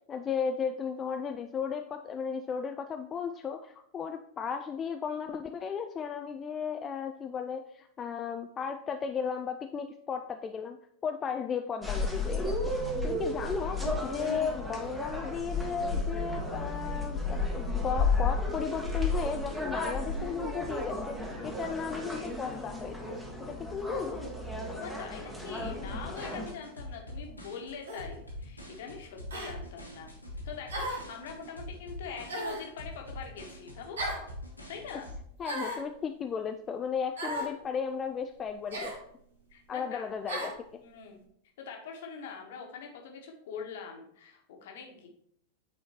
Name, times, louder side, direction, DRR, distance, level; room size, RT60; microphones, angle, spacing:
voice 1, 0.1-12.7 13.0-24.2 35.4-38.9 39.7-40.8, left 6 dB, 25° left, 6 dB, 0.3 m, -35 dB
sound 1, 11.8-26.5, left 2 dB, 5° right, 1.2 m, -33 dB
voice 2, 24.7-30.1 30.4-34.0 34.7-35.1 39.5-40.1 40.8-41.2 41.6-45.1, left 6 dB, 55° left, 2 dB, 1.3 m, -43 dB
sound 2, 25.6-35.2, left 1 dB, 85° left, 1.6 m, -44 dB
sound 3, 27.9-28.1 29.3-29.5 30.7-31.1 32.3-32.7 34.0-34.3 35.4-35.9 37.2-37.5 38.7-39.0 40.3-40.6, right 1 dB, 65° right, 1.4 m, -35 dB
8.9 x 4.1 x 3.0 m, 0.69 s
figure-of-eight pair, 90°, 0 cm